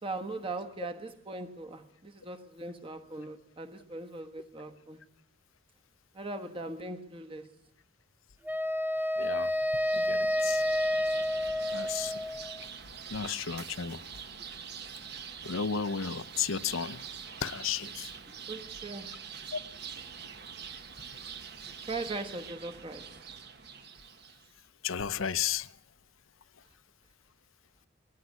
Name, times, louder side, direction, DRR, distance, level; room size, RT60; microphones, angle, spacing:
voice 1, 0.0-5.0 6.1-7.5 18.5-19.2 21.9-23.2, right 2 dB, 25° right, 1.4 m, -40 dB
Wind instrument woodwind instrument, 8.5-12.6, left 1 dB, 10° right, 0.8 m, -29 dB
voice 2, 9.2-9.5 9.9-10.6 11.7-12.1 13.1-14.0 15.5-17.0 17.4-18.1 19.5-19.6 24.8-25.7, left 7 dB, 80° left, 0.8 m, -33 dB
sound 1, 9.4-24.5, right 7 dB, 55° right, 1.4 m, -45 dB
21.0 x 16.0 x 9.5 m
head